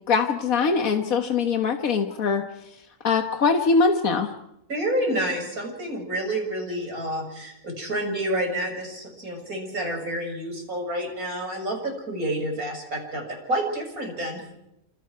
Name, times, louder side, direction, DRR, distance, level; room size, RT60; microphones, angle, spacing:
voice 1, 0.1-2.5 3.0-4.3, left 5 dB, 80° left, 5 dB, 1.8 m, -22 dB
voice 2, 4.7-14.5, right 1 dB, 90° right, 2 dB, 7.0 m, -29 dB
29.0 x 28.0 x 4.7 m, 0.84 s
omnidirectional pair, 1.5 m